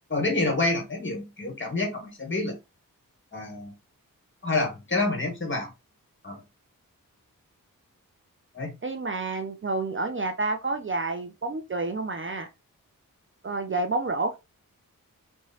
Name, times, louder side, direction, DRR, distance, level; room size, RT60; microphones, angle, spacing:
voice 1, 0.1-2.6 3.3-3.7 4.4-5.7 6.2-6.4 8.5-8.7, left 2 dB, 35° left, 1.6 m, -28 dB
voice 2, 8.8-12.5 13.4-14.4, right 3 dB, 35° right, 0.5 m, -29 dB
3.3 x 3.1 x 2.8 m
cardioid pair, 60°, 34 cm